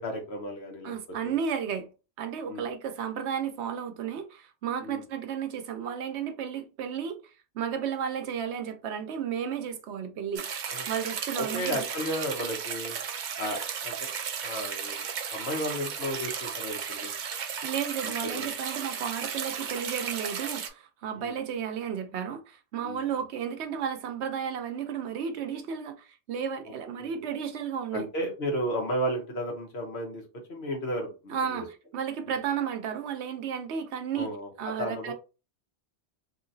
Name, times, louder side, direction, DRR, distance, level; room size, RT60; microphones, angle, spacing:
voice 1, 0.0-0.9 1.2-1.3 2.4-2.7 4.8-5.0 10.7-10.8 11.4-13.0 13.4-14.1 14.4-15.0 15.3-17.1 18.0-18.5 21.2-21.3 22.8-23.0 27.0-27.2 27.9-30.2 30.5-31.6 32.3-32.4 34.1-34.5 34.8-35.1, equal, 65° left, 1.3 m, -33 dB
voice 2, 0.8-1.9 2.2-7.2 7.5-10.5 10.9-11.8 17.6-28.1 31.3-34.3 34.6-35.1, right 7 dB, 75° right, 0.9 m, -33 dB
sound 1, 10.4-20.7, right 7 dB, 55° right, 0.5 m, -35 dB
3.0 x 2.8 x 2.6 m
omnidirectional pair, 1.1 m